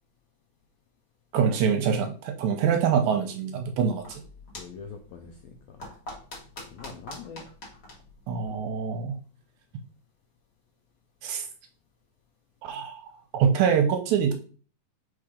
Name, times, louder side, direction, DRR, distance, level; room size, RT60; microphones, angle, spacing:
voice 1, 1.3-4.2 8.3-9.2 11.2-11.5 12.6-14.3, right 7 dB, 75° right, 5 dB, 1.9 m, -25 dB
sound 1, 3.9-9.1, left 1 dB, 35° left, 2.0 m, -46 dB
voice 2, 4.5-5.8 6.7-7.4 8.5-8.7, left 6 dB, 85° left, 3 dB, 1.5 m, -43 dB
4.7 x 4.4 x 5.0 m, 0.40 s
omnidirectional pair, 3.8 m